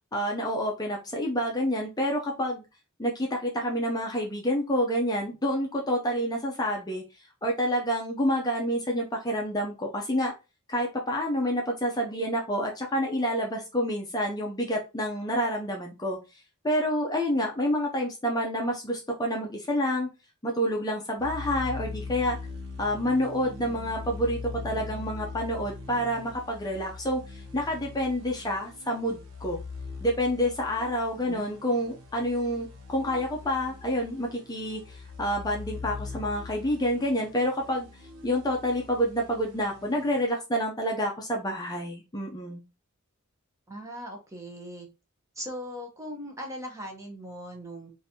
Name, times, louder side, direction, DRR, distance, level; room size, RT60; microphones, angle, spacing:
voice 1, 0.1-2.6 3.0-7.0 7.4-10.3 10.7-16.2 16.6-20.1 20.4-22.4 22.8-29.6 30.0-37.9 38.2-42.6, equal, 15° left, -1 dB, 0.6 m, -28 dB
sound 1, 21.2-40.3, left 4 dB, 75° right, 0.8 m, -41 dB
voice 2, 43.7-44.9 45.4-47.9, equal, 15° right, 1 dB, 0.8 m, -39 dB
3.8 x 2.7 x 2.7 m, 0.28 s
head